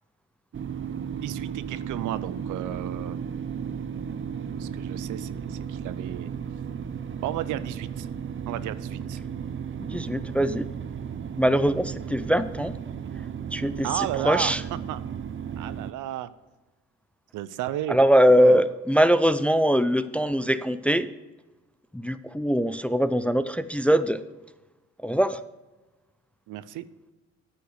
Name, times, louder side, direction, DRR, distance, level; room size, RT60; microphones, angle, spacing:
sound 1, 0.5-15.9, right 7 dB, 40° right, 0.7 m, -34 dB
voice 1, 1.2-3.2 4.6-6.3 7.2-8.1 8.5-9.2 13.8-14.6 14.9-15.0 15.6-16.3 17.3-18.0 18.3-18.6 26.5-26.8, right 13 dB, 80° right, 15 dB, 0.6 m, -33 dB
voice 2, 9.8-10.7 11.3-12.7 13.5-14.6 17.9-21.1 21.9-24.2 25.0-25.4, equal, 5° left, 13 dB, 0.3 m, -22 dB
10.0 x 5.7 x 6.4 m, 1.1 s
cardioid pair, 90°, 30 cm